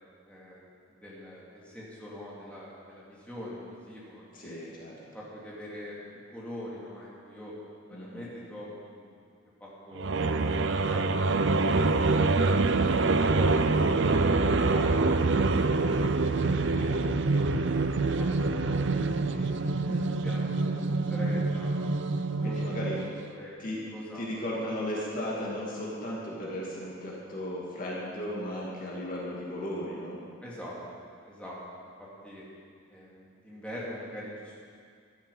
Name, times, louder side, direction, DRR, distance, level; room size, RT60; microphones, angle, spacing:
voice 1, 0.3-0.6 0.9-4.6 5.1-6.0 6.3-7.5 7.9-9.2 9.6-10.1 10.4-12.7 13.2-14.2 14.4-18.8 19.3-21.7 22.2-22.7 23.1-23.6 23.9-24.5 30.4-31.9 32.2-32.4 32.9-34.6, equal, 5° left, -7 dB, 2.7 m, -44 dB
voice 2, 4.3-4.9 7.9-8.3 16.5-16.8 19.8-20.2 22.4-23.0 23.6-23.8 24.1-30.2, left 1 dB, 40° left, -5 dB, 2.5 m, -36 dB
sound 1, 10.0-23.2, right 3 dB, 60° right, 0.6 m, -26 dB
14.0 x 12.0 x 5.6 m, 2.2 s
head